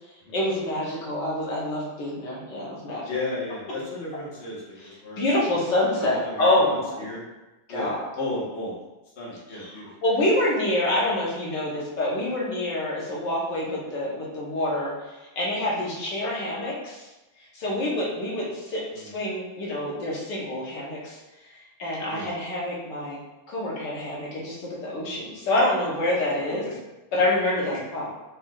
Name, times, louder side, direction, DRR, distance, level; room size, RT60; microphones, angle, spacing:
voice 1, 0.3-3.1 5.2-7.1 7.7-8.1 9.6-9.7 10.0-14.9 15.4-17.1 17.5-21.2 21.8-23.2 23.5-26.6 27.1-28.1, left 1 dB, 65° left, -5 dB, 1.6 m, -26 dB
voice 2, 3.1-5.6 6.0-7.2 7.7-8.7 9.2-9.9 18.9-19.1 22.1-22.3 26.5-26.8 27.6-28.1, left 2 dB, 35° left, -7 dB, 1.2 m, -35 dB
4.3 x 4.2 x 2.4 m, 1.1 s
omnidirectional pair, 2.2 m